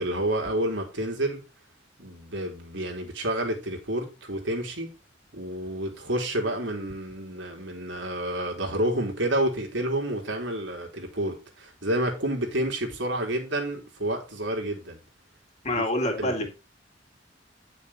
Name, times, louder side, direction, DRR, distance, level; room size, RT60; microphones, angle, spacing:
voice 1, 0.0-1.4 2.0-4.9 5.3-15.0 15.7-15.8 16.2-16.5, right 1 dB, 75° right, 3.6 m, -29 dB
voice 2, 15.6-16.5, left 1 dB, 35° left, 3.1 m, -26 dB
11.0 x 6.6 x 4.3 m
head